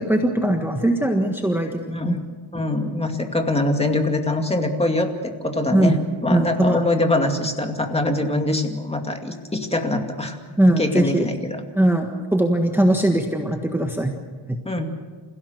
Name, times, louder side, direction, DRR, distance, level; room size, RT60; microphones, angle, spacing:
voice 1, 0.0-2.2 5.7-6.8 10.6-11.3 11.7-14.1 14.5-14.6, right 1 dB, 5° right, 3 dB, 1.5 m, -20 dB
voice 2, 1.9-5.1 5.4-6.0 6.2-10.4 10.8-11.6 14.6-14.9, left 2 dB, 10° left, 4 dB, 2.4 m, -23 dB
28.0 x 16.5 x 6.6 m, 1.4 s
cardioid pair, 115°, 47 cm